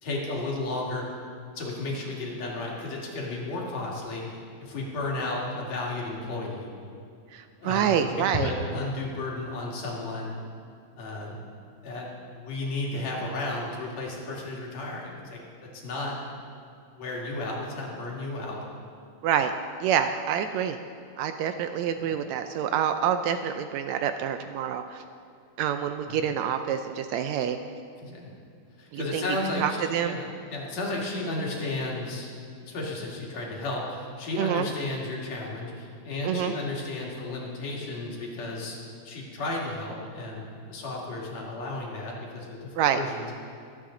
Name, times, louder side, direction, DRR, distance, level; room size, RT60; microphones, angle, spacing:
voice 1, 0.0-1.1 1.5-6.7 7.6-10.3 10.9-11.4 11.8-16.2 17.0-18.6 22.0-22.1 26.1-26.3 28.0-28.3 28.8-32.3 32.6-38.8 39.0-43.3, left 2 dB, 65° left, -3 dB, 3.2 m, -33 dB
voice 2, 7.3-8.5 19.2-19.5 19.8-20.8 21.2-25.0 25.6-27.6 28.9-29.2 29.6-30.2 34.4-34.7 36.2-36.5 42.8-43.0, right 9 dB, 80° right, 8 dB, 1.7 m, -27 dB
23.5 x 8.5 x 3.8 m, 2.4 s
omnidirectional pair, 3.4 m